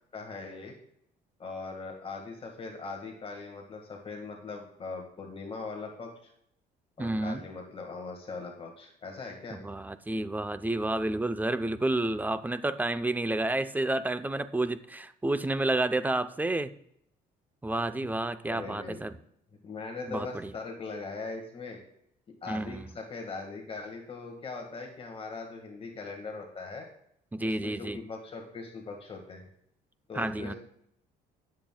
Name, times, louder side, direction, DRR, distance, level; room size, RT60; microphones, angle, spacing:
voice 1, 0.1-0.8 1.4-6.3 7.0-9.6 18.5-19.0 19.6-21.8 22.4-26.9 27.4-29.4 30.1-30.6, left 4 dB, 35° left, 1 dB, 1.8 m, -40 dB
voice 2, 7.0-7.5 9.5-16.7 17.6-19.2 20.1-20.5 22.5-22.9 27.3-28.0 30.1-30.5, right 2 dB, 10° right, 12 dB, 0.6 m, -30 dB
17.5 x 7.5 x 2.3 m, 0.73 s
cardioid pair, 110°, 17 cm